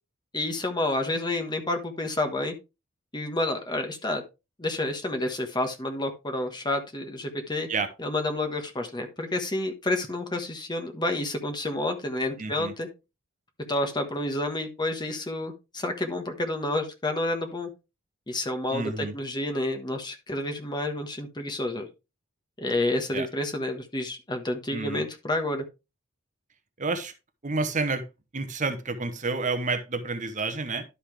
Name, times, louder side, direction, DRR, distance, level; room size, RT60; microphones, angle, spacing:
voice 1, 0.3-2.5 3.1-4.2 4.6-7.7 8.0-12.9 13.7-17.7 18.3-21.9 22.6-25.6, left 2 dB, 20° left, 5 dB, 1.3 m, -29 dB
voice 2, 12.4-12.7 18.7-19.1 23.1-23.3 24.7-25.0 26.8-27.1 27.4-28.1 28.3-30.8, right 3 dB, 35° right, 9 dB, 0.9 m, -29 dB
11.5 x 5.5 x 3.3 m, 0.26 s
head